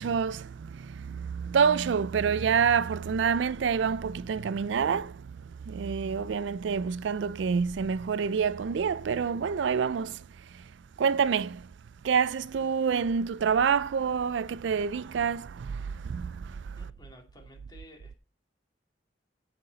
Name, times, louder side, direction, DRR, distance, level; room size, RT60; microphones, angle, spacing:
voice 1, 0.0-10.3 10.5-10.6 11.0-11.7 12.0-16.8, right 6 dB, 70° right, 0.4 m, -27 dB
voice 2, 16.8-18.2, equal, 25° left, 2.6 m, -53 dB
15.5 x 5.9 x 4.0 m
head